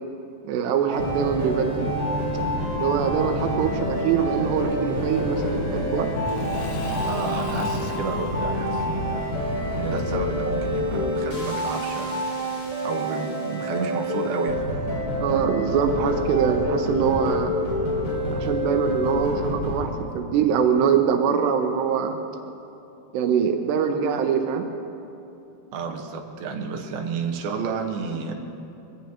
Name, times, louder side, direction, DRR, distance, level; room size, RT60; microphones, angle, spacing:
voice 1, 0.4-1.9 2.7-6.1 15.2-17.6 18.3-22.2 23.1-24.7, right 7 dB, 90° right, 5 dB, 3.0 m, -23 dB
sound 1, 0.9-19.8, equal, 30° left, 3.6 m, -27 dB
Engine / Mechanisms / Drill, 4.7-11.4, left 2 dB, 60° left, 2.6 m, -40 dB
voice 2, 7.0-12.2 12.8-14.7 25.7-28.3, right 4 dB, 70° right, 1 dB, 3.0 m, -31 dB
24.0 x 17.5 x 2.9 m, 2.8 s
omnidirectional pair, 4.7 m